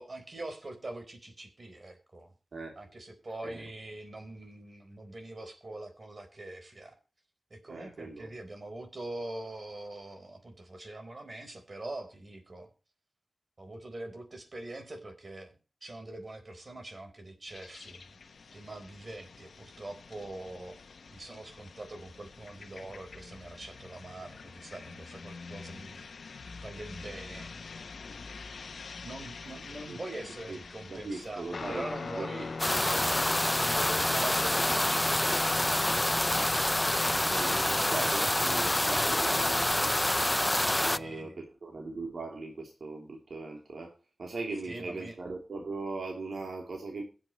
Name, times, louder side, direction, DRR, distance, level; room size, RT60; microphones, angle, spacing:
voice 1, 0.0-2.3 2.8-7.0 7.5-12.7 13.6-15.5 15.8-18.1 18.5-20.8 21.1-26.1 26.6-27.5 29.0-33.0 33.6-35.3 40.5-41.4 44.7-45.2, right 2 dB, 45° right, 5 dB, 4.1 m, -43 dB
voice 2, 7.7-8.3 29.9-30.0 30.5-30.6 30.9-32.5 37.3-39.9 40.6-43.9 44.2-47.0, right 3 dB, 80° right, 1 dB, 3.1 m, -39 dB
sound 1, 17.5-37.1, left 4 dB, 90° left, 1.0 m, -48 dB
Guitar, 31.5-41.3, left 4 dB, 70° left, 0.5 m, -41 dB
sound 2, 32.6-41.0, left 1 dB, 15° left, 0.5 m, -27 dB
22.5 x 7.7 x 3.0 m, 0.34 s
wide cardioid pair, 70°, 0 cm